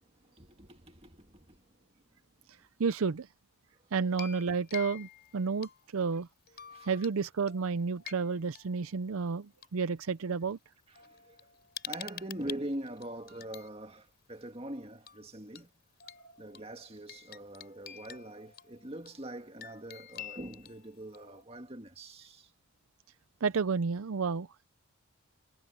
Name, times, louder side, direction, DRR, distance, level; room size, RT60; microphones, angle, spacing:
voice 1, 0.3-1.6 6.7-6.9 10.9-11.4 11.9-15.7 16.4-22.5, right 1 dB, 25° right, 2.1 m, -43 dB
voice 2, 2.8-3.3 3.9-6.3 6.8-10.6 16.2-16.3 23.4-24.6, right 5 dB, 70° right, 0.5 m, -31 dB
sound 1, 4.1-6.0 6.5-7.2 7.5-9.7 10.5-10.6 11.0-13.7 15.1-15.2 15.5-15.6 16.0-21.4, left 10 dB, 45° left, 5.4 m, -48 dB
head